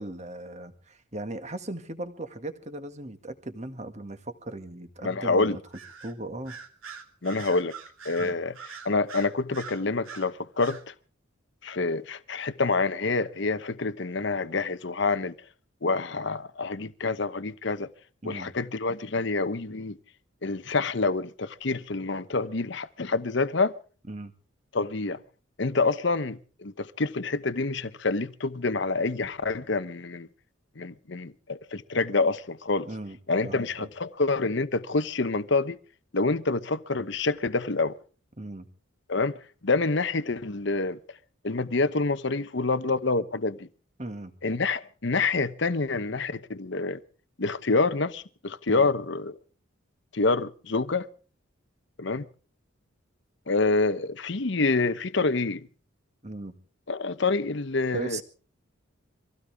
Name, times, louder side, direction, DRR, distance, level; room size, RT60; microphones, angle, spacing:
voice 1, 0.0-5.6 6.0-6.6 8.2-8.4 18.2-18.5 24.1-24.3 32.9-33.2 33.4-33.9 38.4-38.7 44.0-44.3 48.7-48.9 56.2-56.5 57.9-58.2, right 2 dB, 35° right, 1.9 m, -37 dB
voice 2, 5.0-5.6 7.2-7.7 8.0-10.9 11.6-15.3 15.8-17.9 18.2-20.0 20.4-23.7 24.7-25.2 25.6-30.3 30.8-32.9 33.3-35.8 36.1-37.9 39.1-39.4 39.6-41.0 41.4-43.7 44.4-47.0 47.4-49.4 50.1-51.1 52.0-52.3 53.5-55.7 56.9-58.2, left 3 dB, 55° left, 0.9 m, -27 dB
Bird vocalization bird call bird song, 5.7-6.1 6.5-10.3 10.6-10.8, right 7 dB, 75° right, 2.8 m, -43 dB
25.0 x 16.5 x 3.5 m
head